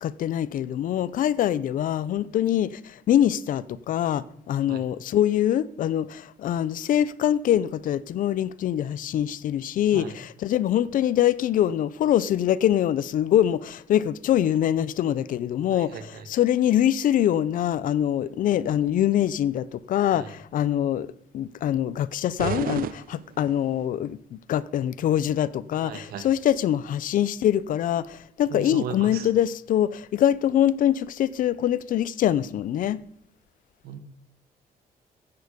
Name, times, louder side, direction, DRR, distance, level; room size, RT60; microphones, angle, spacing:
voice 1, 0.0-21.1 21.3-33.0, left 11 dB, 60° left, 0.7 m, -24 dB
voice 2, 15.7-16.3 20.1-20.3 25.8-26.3 28.5-29.3 33.8-34.0, right 7 dB, 90° right, 1.6 m, -37 dB
sound 1, 22.4-23.9, right 10 dB, 70° right, 0.8 m, -32 dB
15.0 x 10.5 x 5.2 m
cardioid pair, 170°, 15 cm